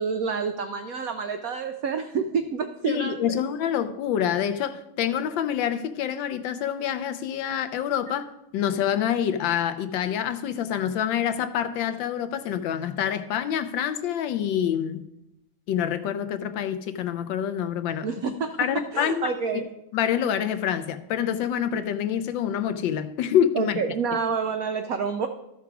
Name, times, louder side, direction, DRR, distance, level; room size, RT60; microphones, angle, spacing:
voice 1, 0.0-3.4 18.0-18.6 18.9-19.7 23.5-25.3, right 5 dB, 90° right, 0.7 m, -28 dB
voice 2, 2.8-15.0 15.7-18.1 18.6-19.3 19.9-23.8, left 9 dB, 75° left, 1.2 m, -26 dB
13.0 x 5.9 x 4.7 m
omnidirectional pair, 2.3 m